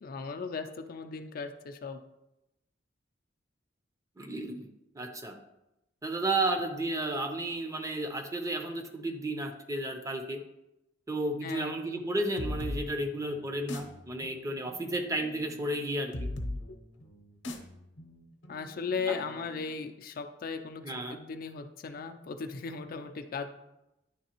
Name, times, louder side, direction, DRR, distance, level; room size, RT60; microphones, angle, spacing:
voice 1, 0.0-2.0 11.4-11.8 16.7-16.8 18.5-23.5, left 5 dB, 50° left, 7 dB, 0.4 m, -37 dB
voice 2, 4.2-4.7 5.0-5.4 6.0-10.4 11.1-16.3 19.1-19.2 20.8-21.2, right 2 dB, 15° right, 4 dB, 0.6 m, -33 dB
sound 1, 12.4-19.8, left 1 dB, 70° left, 0.8 m, -41 dB
9.9 x 3.3 x 2.9 m, 0.91 s
head